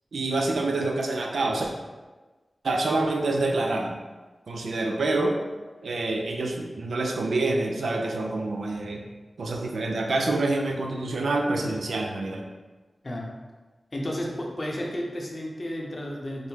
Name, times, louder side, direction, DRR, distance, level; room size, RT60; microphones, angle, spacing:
voice 1, 0.1-1.7 2.6-4.0 4.5-5.4 5.8-9.0 9.4-12.5, right 2 dB, 90° right, 2 dB, 0.3 m, -27 dB
voice 2, 13.0-13.3 13.9-16.5, equal, 45° left, -1 dB, 0.6 m, -32 dB
3.3 x 2.0 x 3.2 m, 1.3 s
cardioid pair, 50°, 0 cm